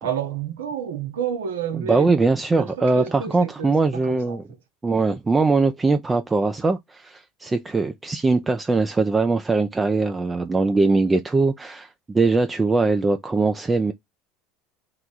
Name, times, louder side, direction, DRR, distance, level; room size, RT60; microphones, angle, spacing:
voice 1, 0.0-2.2 2.6-3.8 4.1-4.4, right 8 dB, 90° right, 1.0 m, -29 dB
voice 2, 1.8-4.4 4.8-13.9, right 3 dB, 20° right, 0.5 m, -21 dB
3.0 x 2.2 x 3.9 m
hypercardioid pair, 80°, 0 cm